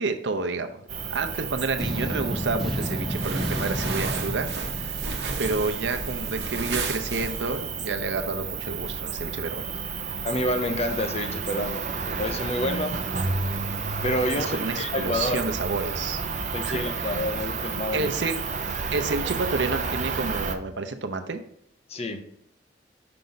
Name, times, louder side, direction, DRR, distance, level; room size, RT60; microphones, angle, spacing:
voice 1, 0.0-4.5 4.7-5.0 5.4-9.6 14.3-16.2 16.6-17.2 17.9-18.4 18.9-21.4, right 3 dB, 85° right, 8 dB, 0.7 m, -30 dB
Cricket, 0.9-20.6, right 5 dB, 40° right, 0.6 m, -31 dB
sound 1, 1.8-5.8, equal, ahead, 1.5 m, -31 dB
sound 2, 3.1-7.7, right 3 dB, 70° right, 1.0 m, -34 dB
voice 2, 10.2-13.0 14.0-15.5 16.5-18.1 21.9-22.3, left 1 dB, 35° left, 7 dB, 0.7 m, -28 dB
5.7 x 5.1 x 4.0 m, 0.72 s
head